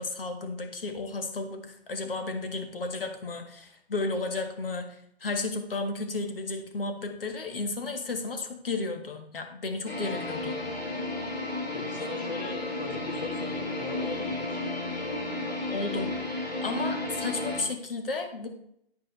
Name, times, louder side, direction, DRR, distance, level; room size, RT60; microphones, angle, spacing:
voice 1, 0.0-10.6 15.7-16.1 16.6-18.5, left 3 dB, 65° left, 6 dB, 1.7 m, -33 dB
sound 1, 9.9-17.6, left 2 dB, 85° left, 3.6 m, -33 dB
voice 2, 11.7-14.6, left 3 dB, 40° left, 4 dB, 1.8 m, -38 dB
9.6 x 8.3 x 3.3 m, 0.71 s
figure-of-eight pair, 135°, 31 cm